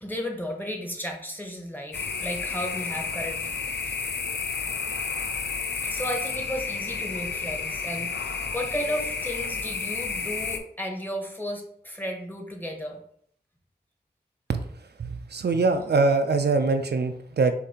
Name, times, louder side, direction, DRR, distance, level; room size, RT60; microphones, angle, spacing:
voice 1, 0.0-3.5 3.8-4.0 5.8-13.0, equal, 10° left, 2 dB, 1.0 m, -34 dB
sound 1, 1.9-10.6, left 5 dB, 75° left, 0.5 m, -31 dB
voice 2, 15.0-17.5, right 3 dB, 70° right, 7 dB, 0.4 m, -23 dB
6.5 x 2.6 x 2.9 m, 0.64 s
wide cardioid pair, 65°, 18 cm